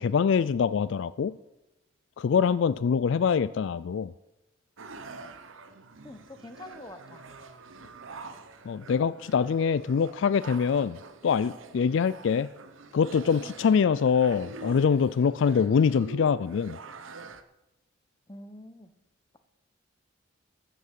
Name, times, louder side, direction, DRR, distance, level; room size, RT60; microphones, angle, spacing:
voice 1, 0.0-1.4 2.2-4.1 8.6-11.0 11.2-12.5 12.9-16.8, left 6 dB, 65° left, 17 dB, 0.3 m, -24 dB
sound 1, 4.8-17.4, right 3 dB, 75° right, 0.9 m, -46 dB
voice 2, 6.0-7.2 18.3-18.9, left 1 dB, 20° left, 9 dB, 0.9 m, -45 dB
14.0 x 6.6 x 7.5 m, 0.94 s
head